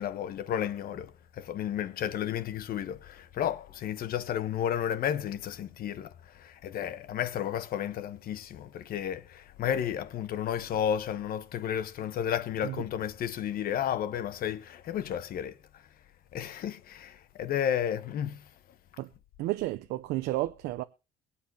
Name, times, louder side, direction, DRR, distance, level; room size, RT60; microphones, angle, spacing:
voice 1, 0.0-15.6 16.3-18.4, left 9 dB, 60° left, 1.0 m, -32 dB
voice 2, 19.4-20.8, right 17 dB, 90° right, 0.6 m, -32 dB
22.5 x 8.4 x 2.8 m
cardioid pair, 110°, 17 cm